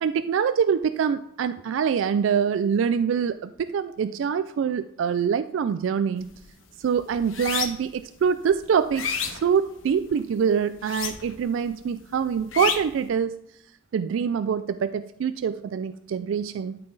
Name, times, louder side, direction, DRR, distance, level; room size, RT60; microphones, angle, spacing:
voice 1, 0.0-6.3 6.8-13.4 13.9-16.8, right 7 dB, 80° right, 12 dB, 0.3 m, -25 dB
sound 1, 6.2-6.5 6.8-8.0 8.5-10.1 10.8-11.5 11.8-13.0, left 7 dB, 85° left, 1.0 m, -30 dB
12.5 x 5.7 x 4.0 m, 0.76 s
head